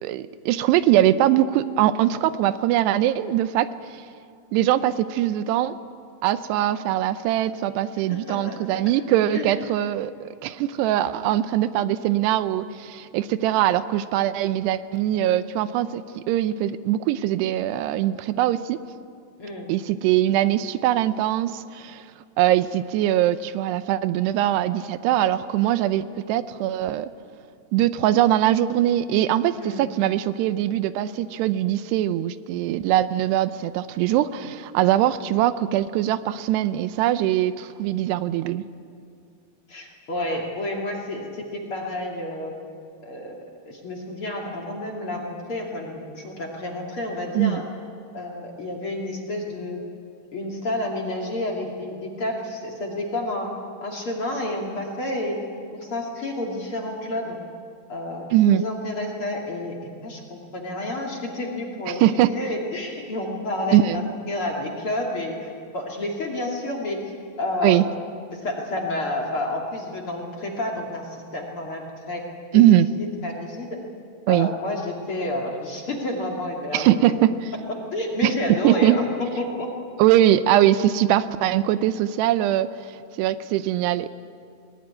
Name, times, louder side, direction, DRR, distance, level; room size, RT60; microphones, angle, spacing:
voice 1, 0.0-3.7 3.9-4.0 4.5-5.8 6.2-18.8 19.7-22.0 22.4-27.1 27.7-38.6 47.4-47.6 58.3-58.6 61.9-62.3 63.7-64.0 67.6-67.8 72.5-72.9 74.3-74.5 76.7-77.3 78.2-78.3 78.6-79.0 80.0-82.7 83.2-84.1, right 12 dB, 80° right, 13 dB, 2.8 m, -21 dB
voice 2, 8.0-8.8 9.3-9.5 19.4-19.7 29.6-30.0 39.7-42.6 43.0-43.4 43.7-47.7 48.1-49.8 50.3-53.5 53.8-55.4 55.7-57.4 57.9-67.0 67.4-67.9 68.3-72.2 72.5-72.7 73.0-73.8 74.3-77.2 77.9-79.0 79.4-79.7, left 1 dB, 35° left, 0 dB, 2.7 m, -30 dB
21.5 x 19.5 x 9.6 m, 2.3 s
omnidirectional pair, 4.8 m